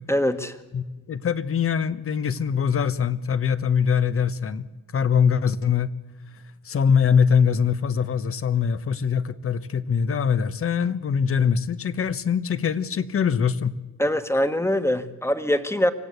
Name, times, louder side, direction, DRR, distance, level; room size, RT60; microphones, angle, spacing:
voice 1, 0.1-0.6 14.0-15.9, left 1 dB, 10° left, 10 dB, 1.6 m, -23 dB
voice 2, 0.7-5.9 6.6-13.7, left 7 dB, 45° left, 14 dB, 1.3 m, -23 dB
25.0 x 16.5 x 8.3 m, 1.1 s
cardioid pair, 90°, 30 cm